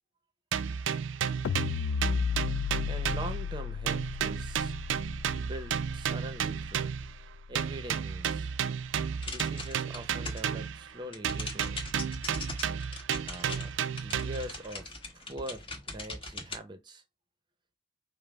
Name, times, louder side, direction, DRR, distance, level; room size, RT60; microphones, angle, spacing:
sound 1, 0.5-3.6 3.9-7.1 7.5-10.9 11.2-14.6, right 7 dB, 80° right, 0.3 m, -33 dB
sound 2, 1.4-7.7, left 6 dB, 90° left, 0.3 m, -35 dB
voice 1, 2.9-4.7 5.4-6.9 7.5-8.5 9.3-11.8 13.2-17.0, right 1 dB, 25° right, 0.6 m, -43 dB
sound 3, 9.2-10.6 10.9-16.6, left 2 dB, 30° left, 1.3 m, -41 dB
5.4 x 2.0 x 4.7 m
head